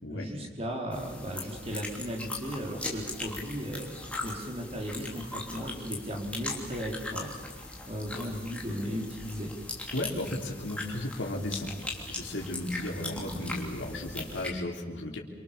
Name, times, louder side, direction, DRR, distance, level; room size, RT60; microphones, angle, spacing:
voice 1, 0.1-9.5, equal, 30° right, 1 dB, 4.5 m, -36 dB
sound 1, 0.9-14.5, left 2 dB, 5° left, 3.3 m, -39 dB
voice 2, 9.9-11.7 12.1-15.2, left 1 dB, 80° left, 0 dB, 3.7 m, -34 dB
28.0 x 25.0 x 7.0 m, 1.4 s
head